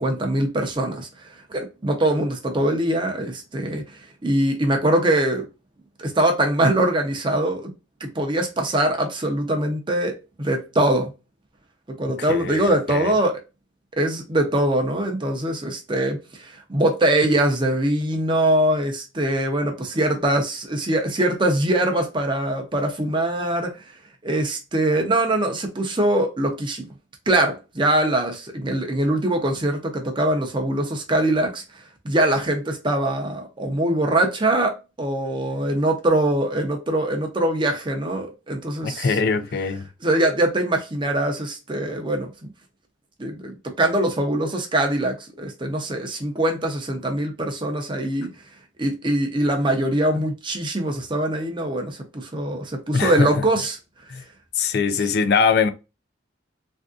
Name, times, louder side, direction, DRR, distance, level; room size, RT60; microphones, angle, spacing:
voice 1, 0.0-5.4 6.0-7.7 8.0-11.1 12.0-13.4 14.0-23.8 24.2-26.9 27.3-39.2 40.0-42.5 43.2-48.3 48.8-53.8, right 1 dB, 25° right, 0.6 m, -23 dB
voice 2, 12.3-13.1 38.8-39.9 52.9-53.4 54.1-54.2 54.6-55.7, left 5 dB, 55° left, 0.4 m, -22 dB
3.4 x 2.6 x 2.4 m
head